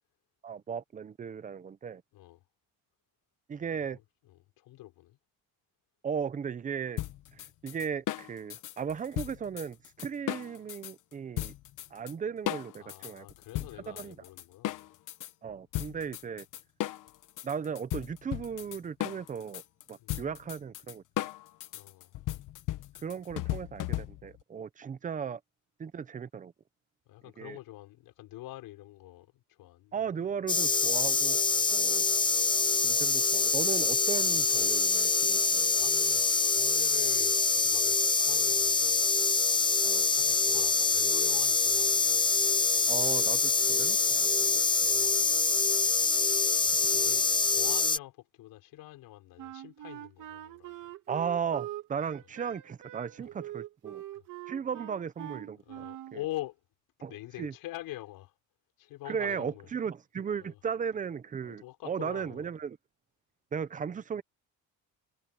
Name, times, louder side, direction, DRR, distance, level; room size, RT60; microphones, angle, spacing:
voice 1, 0.4-2.0 3.5-4.0 6.0-7.0 7.3-11.5 11.9-13.3 13.9-14.2 15.4-16.5 17.4-19.6 19.9-21.3 23.0-25.4 25.8-26.5 27.4-27.6 29.9-31.4 31.7-32.0 32.8-35.7 39.8-40.1 42.9-44.5 51.1-54.0 54.5-55.9 57.0-57.1 57.4-57.5 59.1-62.8 63.5-64.2, right 7 dB, 20° right, 0.7 m, -36 dB
voice 2, 2.1-2.4 3.6-4.0 4.3-5.2 12.8-14.9 20.0-20.2 21.7-22.2 27.1-30.3 31.5-32.1 35.7-39.1 40.1-42.3 44.2-44.5 44.8-45.5 46.6-50.9 53.2-53.3 54.1-54.2 55.6-56.6 57.1-58.4 58.8-59.7 60.4-60.6 61.4-62.5, left 16 dB, 80° left, 6.3 m, -45 dB
sound 1, 7.0-10.9 11.4-12.1 12.5-15.3 15.7-24.4, left 14 dB, 60° left, 1.3 m, -36 dB
sound 2, 30.5-48.0, left 4 dB, 15° left, 0.8 m, -25 dB
Wind instrument woodwind instrument, 49.4-56.2, right 13 dB, 60° right, 2.9 m, -43 dB
cardioid pair, 165°, 35 cm